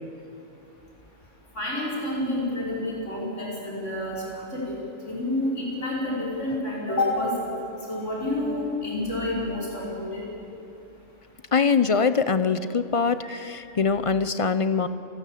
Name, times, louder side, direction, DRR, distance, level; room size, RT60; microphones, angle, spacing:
voice 1, 1.6-4.8 5.0-7.5 7.9-10.2 13.2-13.4, left 1 dB, 70° left, -5 dB, 5.7 m, -29 dB
voice 2, 11.5-14.9, left 5 dB, 40° left, 13 dB, 0.5 m, -23 dB
28.5 x 12.0 x 8.4 m, 2.8 s
omnidirectional pair, 1.3 m